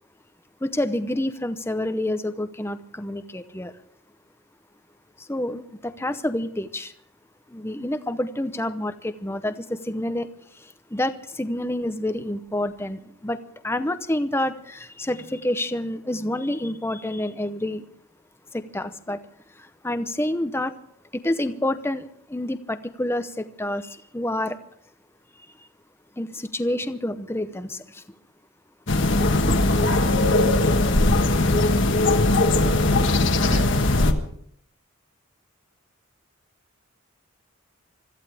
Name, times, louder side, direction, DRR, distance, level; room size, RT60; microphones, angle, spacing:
voice 1, 0.6-3.7 5.2-6.9 7.5-10.3 10.5-13.4 13.6-17.8 18.5-19.2 19.6-20.7 21.2-24.6 26.2-28.0 29.5-29.6, left 1 dB, 10° left, 0.7 m, -28 dB
sound 1, 28.9-34.1, left 2 dB, 60° left, 1.3 m, -19 dB
voice 2, 32.5-34.3, right 1 dB, 85° right, 4.2 m, -40 dB
25.0 x 14.5 x 3.5 m
head